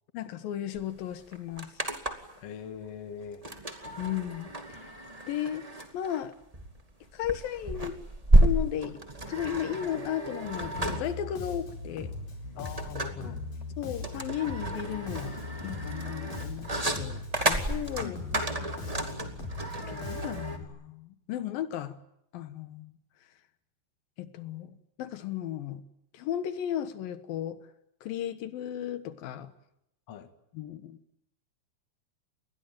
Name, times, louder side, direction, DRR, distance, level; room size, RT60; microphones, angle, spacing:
voice 1, 0.1-1.7 4.0-4.8 5.3-5.7 5.9-6.3 7.1-8.0 8.3-9.0 9.3-12.1 13.8-18.2 19.8-22.0 22.3-22.9 24.2-25.8 26.1-27.6 28.0-29.5 30.5-31.0, left 10 dB, 85° left, 3.0 m, -35 dB
sound 1, 0.8-0.9 1.1-2.4 3.4-20.6, right 1 dB, 15° right, 1.9 m, -30 dB
voice 2, 2.4-3.4 12.6-13.4 18.0-18.8 30.1-30.3, left 8 dB, 50° left, 2.5 m, -42 dB
Bass guitar, 10.7-20.6, left 2 dB, 70° left, 5.9 m, -39 dB
28.5 x 21.0 x 9.1 m
omnidirectional pair, 4.0 m